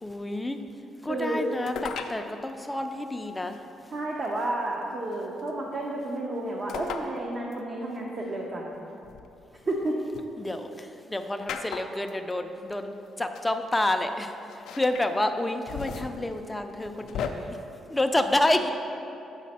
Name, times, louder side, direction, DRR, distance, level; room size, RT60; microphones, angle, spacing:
voice 1, 0.0-0.6 1.0-3.6 10.4-17.6 17.9-18.7, left 1 dB, 15° left, 6 dB, 0.4 m, -29 dB
voice 2, 1.1-1.4 3.9-8.8 9.7-10.0, right 1 dB, 40° right, -2 dB, 0.8 m, -31 dB
sound 1, 1.7-2.2 3.5-3.6 5.1-5.5 6.7-7.1 7.5-7.6 9.0-10.2 11.5-12.1 13.1-13.2 13.3-13.5 14.5-15.1 15.5-17.3, left 7 dB, 80° left, 0.4 m, -36 dB
7.3 x 5.0 x 4.2 m, 2.8 s
cardioid pair, 90°, 0 cm